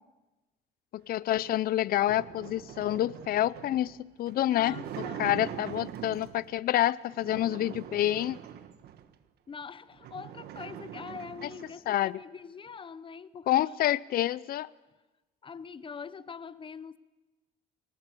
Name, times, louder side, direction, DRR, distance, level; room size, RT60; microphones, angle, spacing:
voice 1, 0.9-8.4 11.9-12.2 13.5-14.7, left 13 dB, 60° left, 0.7 m, -28 dB
sound 1, 1.3-6.5 7.1-9.1 9.6-9.7 9.9-11.8, right 10 dB, 70° right, 1.5 m, -43 dB
voice 2, 4.5-5.3 9.5-13.7 15.4-17.0, left 6 dB, 30° left, 0.8 m, -43 dB
23.5 x 19.0 x 8.4 m
cardioid pair, 110°, 17 cm